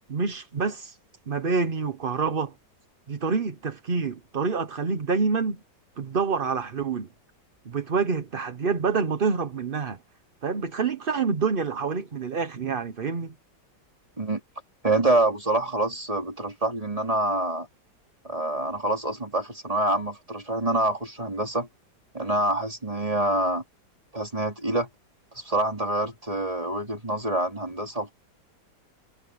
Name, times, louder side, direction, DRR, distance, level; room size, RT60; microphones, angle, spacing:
voice 1, 0.1-1.0 1.3-2.5 3.1-5.6 6.0-7.1 7.6-10.0 10.4-13.3, right 5 dB, 35° right, 1.0 m, -27 dB
voice 2, 14.8-17.7 18.2-21.7 22.1-23.6 24.1-24.9 25.3-28.1, right 2 dB, 20° right, 3.6 m, -26 dB
omnidirectional pair, 1.9 m